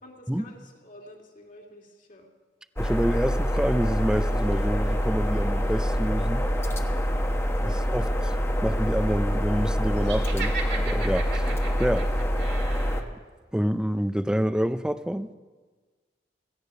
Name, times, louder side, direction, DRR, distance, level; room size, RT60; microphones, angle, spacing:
voice 1, 0.0-2.3, left 1 dB, 50° left, 2.4 m, -50 dB
sound 1, 2.8-13.0, equal, 15° left, 1.0 m, -25 dB
voice 2, 2.8-6.5 7.6-8.3 8.6-11.5 11.8-12.1 13.5-15.3, equal, 5° right, 0.4 m, -27 dB
Laughter, 10.0-13.0, right 4 dB, 65° right, 2.2 m, -36 dB
17.0 x 15.5 x 5.4 m
head